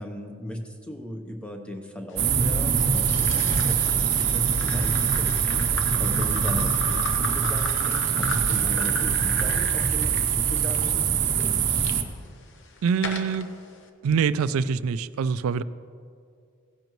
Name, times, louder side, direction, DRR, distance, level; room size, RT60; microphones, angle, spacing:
voice 1, 0.0-5.7 6.0-11.6, equal, 5° left, 3 dB, 0.8 m, -38 dB
sound 1, 2.2-12.0, right 7 dB, 50° right, 0.7 m, -23 dB
sound 2, 2.8-11.9 12.5-13.4, left 3 dB, 55° left, 0.8 m, -36 dB
voice 2, 12.8-13.5 14.0-15.6, right 6 dB, 80° right, 16 dB, 0.3 m, -24 dB
16.5 x 10.5 x 3.1 m, 2.3 s
head